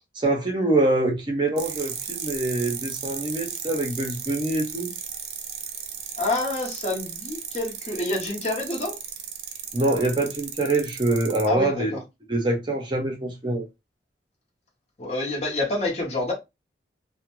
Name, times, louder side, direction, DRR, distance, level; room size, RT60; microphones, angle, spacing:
voice 1, 0.1-4.9 9.7-11.9 12.3-13.7, right 2 dB, 25° right, 0.6 m, -24 dB
sound 1, 1.6-11.5, right 8 dB, 75° right, 0.5 m, -35 dB
voice 2, 6.2-9.0 11.4-12.0 15.0-16.3, left 2 dB, 40° left, 0.8 m, -27 dB
2.4 x 2.1 x 2.9 m
head